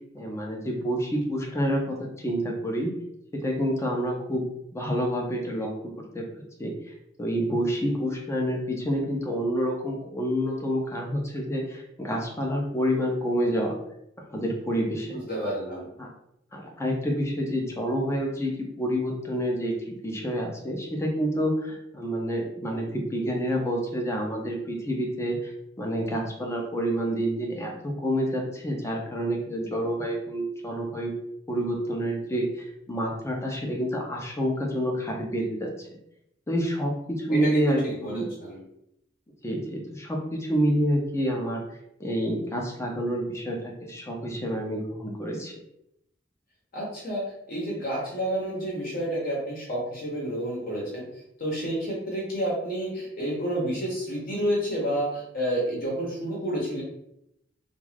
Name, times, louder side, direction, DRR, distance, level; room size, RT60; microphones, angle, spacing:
voice 1, 0.1-2.9 3.3-4.5 4.7-6.2 6.6-6.7 7.2-13.8 14.3-15.2 16.0-16.1 16.5-25.5 25.8-31.1 31.5-35.7 36.5-36.9 37.2-38.3 39.4-41.6 42.0-45.5, equal, 15° left, 0 dB, 0.5 m, -28 dB
voice 2, 15.1-15.9 37.3-38.6 46.7-51.1 51.4-56.8, equal, 50° left, -3 dB, 0.8 m, -30 dB
2.3 x 2.3 x 3.2 m, 0.77 s
head